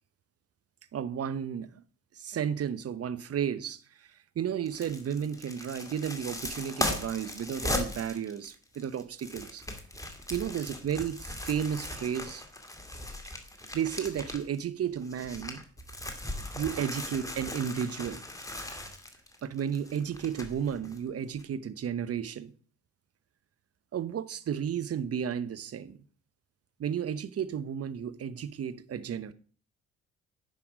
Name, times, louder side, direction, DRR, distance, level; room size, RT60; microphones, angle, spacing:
voice 1, 0.9-1.8 2.1-9.6 10.3-11.2 11.4-12.4 13.7-15.6 16.5-18.2 19.4-22.5 23.9-26.0 26.8-29.3, right 8 dB, 45° right, 0.9 m, -33 dB
sound 1, 4.7-14.6 15.0-21.0 21.4-21.5, left 1 dB, 10° left, 2.3 m, -38 dB
10.0 x 5.9 x 4.9 m
hypercardioid pair, 50°, 35 cm